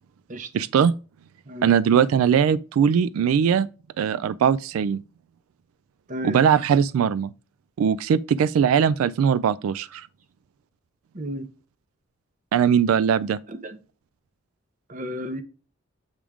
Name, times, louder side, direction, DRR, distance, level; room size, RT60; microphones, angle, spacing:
voice 1, 0.5-0.9 1.6-3.7 4.0-5.0 6.2-7.3 7.8-10.1 12.5-13.4, right 7 dB, 90° right, 0.3 m, -20 dB
voice 2, 11.1-11.5 13.5-13.8 14.9-15.4, equal, 40° right, 0.7 m, -33 dB
7.3 x 3.5 x 4.8 m
head